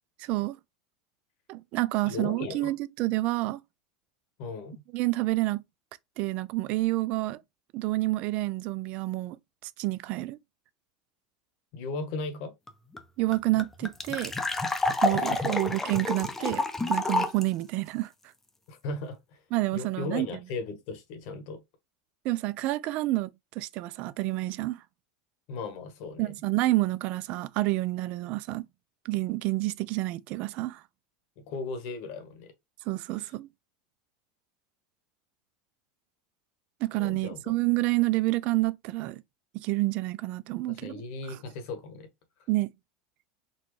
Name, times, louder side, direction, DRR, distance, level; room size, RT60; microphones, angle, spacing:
voice 1, 0.2-0.6 1.5-3.6 4.9-5.6 6.2-7.4 7.7-9.4 9.6-10.4 13.2-14.3 15.0-18.1 19.5-20.3 22.2-23.3 23.6-24.8 26.2-28.7 29.1-30.8 32.9-33.5 36.8-39.2 39.5-41.0 41.3-41.4 42.5-42.7, right 19 dB, 55° right, 0.3 m, -28 dB
voice 2, 2.0-2.7 4.4-4.8 11.7-12.5 15.1-15.6 18.7-19.4 19.7-21.6 25.5-26.3 31.5-32.5 37.0-37.5 40.7-42.1, left 3 dB, 60° left, 1.1 m, -37 dB
sound 1, 12.7-12.8 12.9-13.0 13.3-17.4, left 2 dB, 10° left, 0.6 m, -28 dB
4.1 x 2.3 x 3.1 m
supercardioid pair, 120°, 3 cm